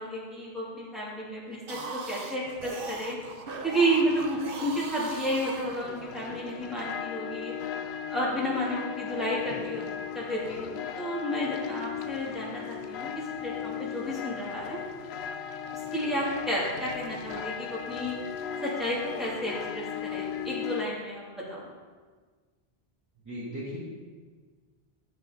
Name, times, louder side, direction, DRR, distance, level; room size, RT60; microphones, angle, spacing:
voice 1, 0.0-3.2 3.6-7.5 8.1-9.8 10.1-13.1 13.4-14.8 15.9-18.2 18.6-21.7, equal, ahead, -8 dB, 2.9 m, -31 dB
sound 1, 1.5-6.3, right 3 dB, 65° right, 1.1 m, -39 dB
sound 2, 3.9-20.8, left 8 dB, 90° left, 0.8 m, -37 dB
voice 2, 23.2-23.9, equal, 15° right, -12 dB, 3.5 m, -37 dB
12.0 x 7.5 x 4.1 m, 1.5 s
omnidirectional pair, 1.0 m